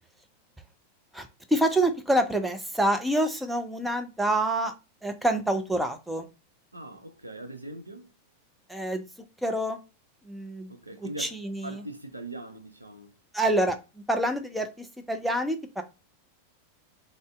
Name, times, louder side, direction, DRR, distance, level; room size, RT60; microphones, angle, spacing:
voice 1, 1.1-4.7 5.0-6.3 8.7-9.0 9.4-9.8 10.3-10.7 11.0-11.8 13.3-15.8, right 1 dB, 5° right, 0.5 m, -27 dB
voice 2, 6.7-8.1 10.7-11.4 11.6-13.1, right 1 dB, 85° right, 0.5 m, -41 dB
2.6 x 2.1 x 3.4 m
figure-of-eight pair, 90°, 0 cm